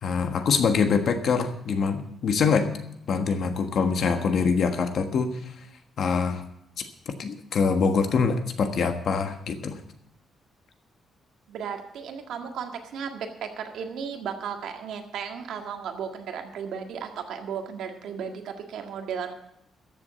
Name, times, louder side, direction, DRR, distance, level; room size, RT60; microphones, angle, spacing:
voice 1, 0.0-2.7 3.1-5.5 6.0-6.4 6.8-6.9 7.2-9.8, left 5 dB, 50° left, 7 dB, 1.4 m, -24 dB
voice 2, 11.5-19.3, right 7 dB, 75° right, 4 dB, 1.8 m, -35 dB
14.0 x 7.3 x 8.2 m, 0.79 s
cardioid pair, 165°, 0 cm